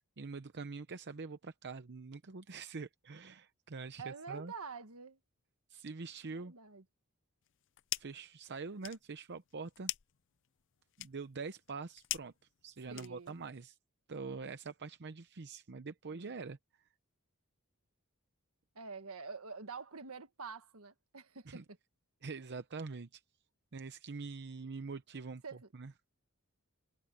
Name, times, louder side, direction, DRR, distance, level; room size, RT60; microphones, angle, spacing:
voice 1, 0.2-4.5 5.7-6.6 7.9-9.9 11.0-12.3 12.6-13.8 14.1-16.9 21.5-21.6 22.2-23.2 23.7-25.4 25.7-25.9, right 4 dB, 55° right, 0.8 m, -44 dB
voice 2, 4.0-5.2 6.2-6.8 12.9-13.4 16.1-16.4 18.7-21.6 25.4-25.7, right 5 dB, 75° right, 1.6 m, -47 dB
sound 1, 7.4-8.3 8.6-13.5, left 16 dB, 60° left, 0.5 m, -44 dB
head